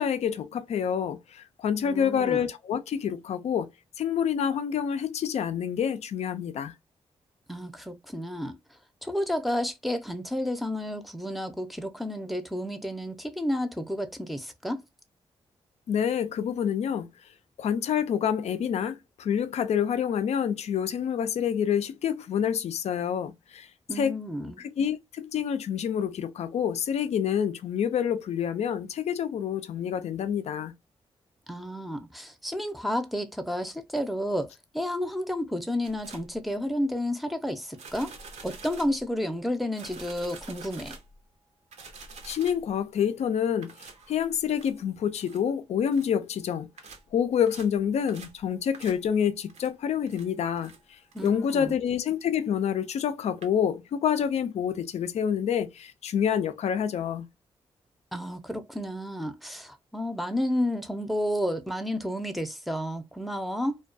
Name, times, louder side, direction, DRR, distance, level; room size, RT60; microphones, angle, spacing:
voice 1, 0.0-3.7 4.0-6.7 15.9-17.1 17.6-24.2 24.6-30.7 42.3-46.7 47.1-57.3, left 8 dB, 70° left, 0.4 m, -27 dB
voice 2, 1.8-2.5 7.5-8.5 9.0-14.8 23.9-24.6 31.5-34.5 34.7-38.1 38.4-41.0 51.1-51.8 58.1-63.8, equal, ahead, 0.5 m, -31 dB
sound 1, 35.8-36.4 37.7-39.1 39.7-41.2 41.7-42.7 43.6-44.8 45.2-45.4 45.9-46.1 46.8-47.1 47.5-47.8 48.1-48.4 48.7-49.1 49.5-49.7 50.1-50.3 50.6-50.8 51.1-51.3 53.0-53.1 53.4-53.5, right 4 dB, 80° right, 0.6 m, -47 dB
2.3 x 2.2 x 2.5 m
cardioid pair, 65°, 11 cm